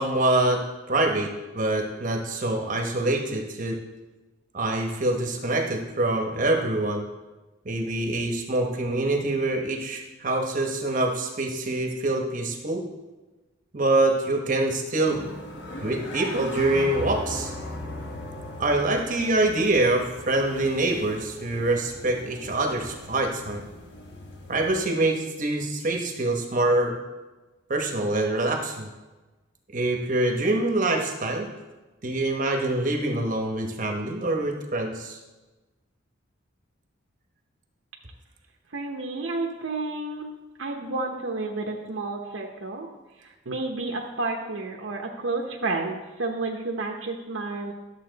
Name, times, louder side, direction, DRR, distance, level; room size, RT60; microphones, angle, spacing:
voice 1, 0.0-3.8 4.5-7.0 7.6-12.9 13.7-15.2 15.8-17.5 18.6-23.6 24.5-27.0 27.7-28.9 29.7-31.5 32.0-35.2, right 2 dB, 40° right, 3 dB, 1.0 m, -25 dB
sound 1, 15.1-24.8, left 1 dB, 60° left, 1.2 m, -38 dB
voice 2, 38.7-40.3 40.6-42.9 43.2-47.7, right 3 dB, 80° right, 1 dB, 0.9 m, -31 dB
11.5 x 7.2 x 4.0 m, 1.2 s
head